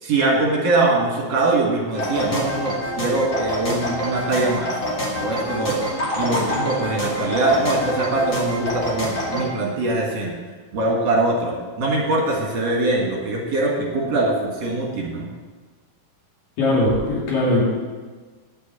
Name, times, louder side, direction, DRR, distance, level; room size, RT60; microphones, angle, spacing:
voice 1, 0.0-4.7 5.1-5.9 6.1-10.4 10.7-15.3, right 2 dB, 55° right, -2 dB, 2.7 m, -22 dB
sound 1, 1.9-9.5, equal, 40° left, 2.7 m, -26 dB
voice 2, 16.6-17.6, left 1 dB, 75° left, -5 dB, 4.2 m, -19 dB
10.0 x 6.1 x 8.4 m, 1.4 s
omnidirectional pair, 3.9 m